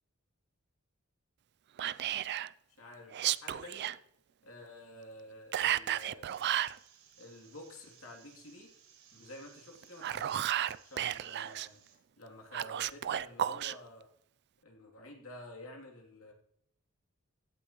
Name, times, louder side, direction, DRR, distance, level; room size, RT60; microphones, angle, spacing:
Whispering, 1.8-2.5 3.1-4.0 5.5-6.8 9.8-11.7 12.5-13.7, right 11 dB, 50° right, 0.4 m, -33 dB
voice 1, 2.8-3.9 4.4-6.4 7.2-8.7 9.1-10.5 10.8-11.8 12.2-14.1 14.6-16.3, left 1 dB, 75° left, 1 dB, 3.0 m, -50 dB
sound 1, 6.3-12.0, right 8 dB, 70° right, 4.1 m, -61 dB
16.0 x 12.0 x 3.1 m, 0.76 s
head